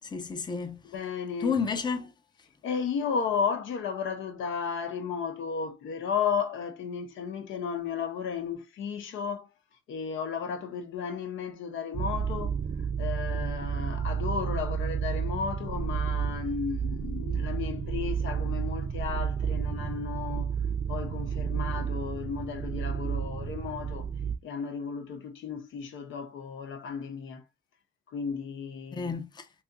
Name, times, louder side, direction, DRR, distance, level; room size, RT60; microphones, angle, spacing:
voice 1, 0.0-0.8 1.4-2.1 28.9-29.5, left 5 dB, 20° left, 0.6 m, -31 dB
voice 2, 0.8-1.6 2.6-12.6 13.0-20.5 20.9-24.1 24.4-27.5 28.1-29.2, left 6 dB, 75° left, 0.8 m, -34 dB
sound 1, 11.9-24.4, right 7 dB, 40° right, 0.5 m, -31 dB
2.8 x 2.5 x 3.5 m
cardioid pair, 90°, 20 cm